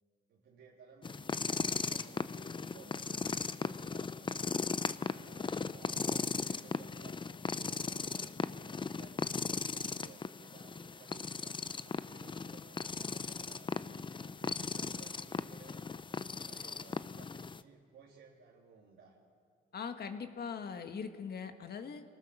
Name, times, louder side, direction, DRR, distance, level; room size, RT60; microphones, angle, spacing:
voice 1, 0.3-4.5 5.0-13.7 14.2-15.8 16.4-19.2, right 5 dB, 85° right, -4 dB, 2.7 m, -58 dB
sound 1, 1.0-17.6, left 5 dB, 25° left, 0.5 m, -37 dB
voice 2, 19.7-22.0, left 6 dB, 55° left, 7 dB, 1.6 m, -41 dB
27.0 x 19.5 x 6.3 m, 2.1 s
cardioid pair, 90°, 20 cm